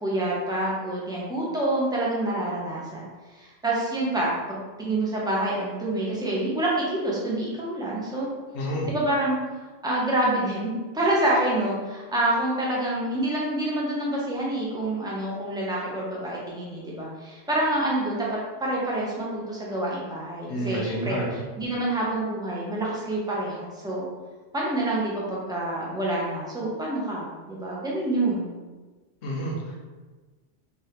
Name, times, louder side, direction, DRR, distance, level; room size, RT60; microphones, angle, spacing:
voice 1, 0.0-3.1 3.4-8.3 8.9-9.4 9.8-24.0 24.5-28.5, right 1 dB, 5° right, -5 dB, 0.3 m, -27 dB
voice 2, 8.5-8.9 20.5-21.4 29.2-29.8, equal, 65° left, -2 dB, 0.9 m, -29 dB
3.4 x 2.5 x 2.8 m, 1.3 s
omnidirectional pair, 1.3 m